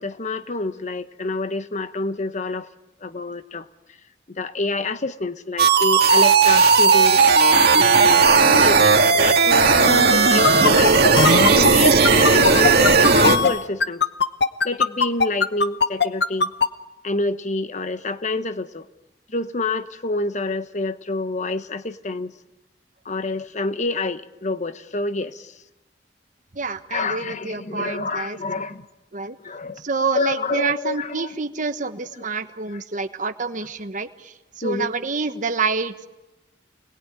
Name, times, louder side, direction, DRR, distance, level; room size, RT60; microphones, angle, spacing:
voice 1, 0.0-2.7 3.0-3.6 4.3-7.2 7.8-14.0 14.6-16.5 17.0-18.8 19.3-22.3 23.0-25.5 26.9-28.8 29.4-29.8 30.1-31.3 34.6-34.9, left 3 dB, 45° left, 11 dB, 1.1 m, -27 dB
sound 1, 5.6-13.4, right 4 dB, 60° right, 2.2 m, -15 dB
sound 2, 10.4-16.7, left 4 dB, 65° left, 1.0 m, -18 dB
voice 2, 26.5-28.4 29.1-29.4 29.8-36.1, right 4 dB, 45° right, 9 dB, 1.3 m, -27 dB
28.5 x 20.5 x 9.1 m, 1.0 s
head